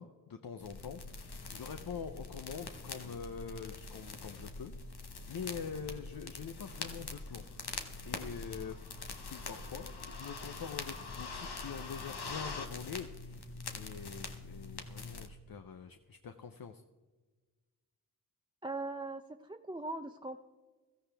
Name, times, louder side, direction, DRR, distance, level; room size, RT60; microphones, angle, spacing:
voice 1, 0.0-4.7 5.0-7.4 8.0-8.8 9.3-16.8, left 6 dB, 65° left, 8 dB, 0.7 m, -45 dB
sound 1, 0.6-15.3, left 3 dB, 85° left, 1.2 m, -44 dB
voice 2, 18.6-20.4, right 2 dB, 15° right, 5 dB, 0.5 m, -40 dB
15.5 x 14.0 x 3.4 m, 1.4 s
cardioid pair, 50°, 38 cm